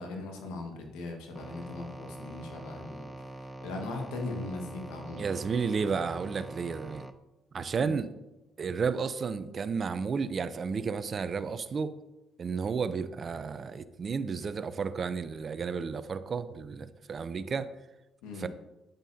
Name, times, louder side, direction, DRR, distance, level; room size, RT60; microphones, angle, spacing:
voice 1, 0.0-5.2 7.8-7.9 18.2-18.5, left 2 dB, 90° left, 1.7 m, -39 dB
sound 1, 1.3-7.1, right 1 dB, 10° right, 0.7 m, -44 dB
voice 2, 5.1-7.1 7.5-8.1 8.6-11.9 12.4-17.7 18.4-18.5, right 5 dB, 50° right, 0.6 m, -32 dB
9.2 x 8.9 x 2.8 m
supercardioid pair, 65°, 0 cm